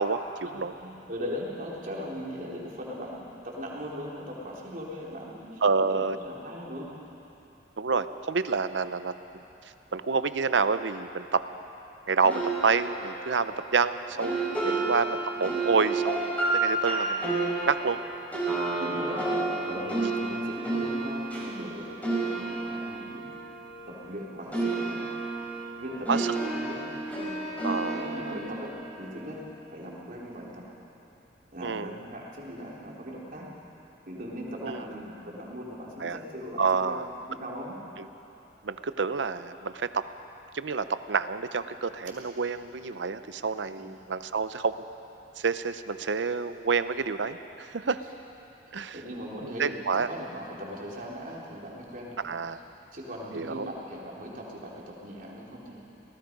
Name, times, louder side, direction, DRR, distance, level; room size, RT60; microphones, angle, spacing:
voice 1, 0.0-0.7 5.6-6.2 7.8-9.4 9.9-11.4 12.1-17.3 17.6-18.0 26.1-26.3 27.6-28.4 31.6-32.0 34.6-34.8 36.0-36.2 36.6-37.1 38.0-38.1 38.6-40.0 40.5-44.7 45.4-48.0 48.7-49.0 49.4-50.1 52.2-52.6 53.3-53.7, right 5 dB, 85° right, 12 dB, 0.7 m, -28 dB
voice 2, 0.8-5.6 5.9-6.9 14.6-14.9 18.8-19.2 19.6-23.2 23.9-25.1 25.8-27.3 27.9-29.4 29.7-30.7 31.5-33.5 34.1-37.0 37.4-37.8 43.8-43.9 48.9-52.4 52.9-55.9, equal, 50° right, -4 dB, 3.7 m, -39 dB
sound 1, 12.2-24.2 24.5-29.7, right 2 dB, 10° left, 5.1 m, -31 dB
27.0 x 18.0 x 5.3 m, 3.0 s
head